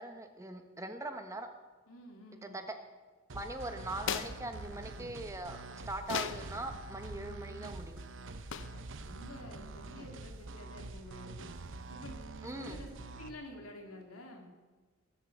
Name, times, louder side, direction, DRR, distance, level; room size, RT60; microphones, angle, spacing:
voice 1, 0.0-1.5 2.4-2.7 3.3-8.0 12.4-12.8, right 2 dB, 15° right, 6 dB, 1.1 m, -41 dB
voice 2, 1.9-2.6 8.6-11.5 11.9-12.9 13.2-14.5, left 1 dB, 85° left, 1 dB, 3.2 m, -50 dB
sound 1, 3.3-13.3, right 2 dB, 60° right, 0.9 m, -46 dB
sound 2, 3.9-4.4 6.0-6.5 8.5-8.8, left 7 dB, 60° left, 0.7 m, -36 dB
21.5 x 7.7 x 7.9 m, 1.3 s
head